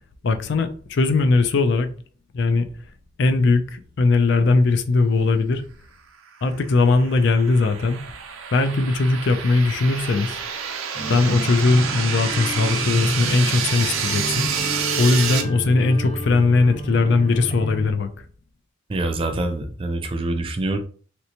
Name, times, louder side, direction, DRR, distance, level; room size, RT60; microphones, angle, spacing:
voice 1, 0.2-1.9 2.3-2.7 3.2-5.6 6.4-8.0 8.5-10.4 11.1-14.5 15.0-18.1, left 3 dB, 60° left, 0.4 m, -19 dB
sound 1, 6.4-15.4, right 7 dB, 90° right, 0.6 m, -28 dB
sound 2, 10.9-17.9, equal, 30° left, 0.8 m, -30 dB
voice 2, 18.9-20.8, right 2 dB, 25° right, 0.4 m, -25 dB
3.2 x 2.8 x 2.8 m
head